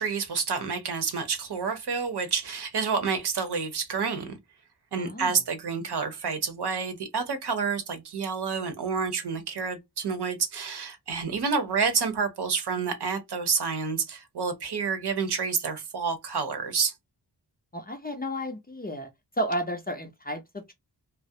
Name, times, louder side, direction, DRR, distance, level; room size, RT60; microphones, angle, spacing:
voice 1, 0.0-4.4 4.9-16.9, right 5 dB, 65° right, 0.8 m, -29 dB
voice 2, 5.0-5.4 17.7-19.1 19.4-20.7, equal, 20° left, 0.5 m, -32 dB
2.3 x 2.0 x 2.6 m
wide cardioid pair, 105°, 43 cm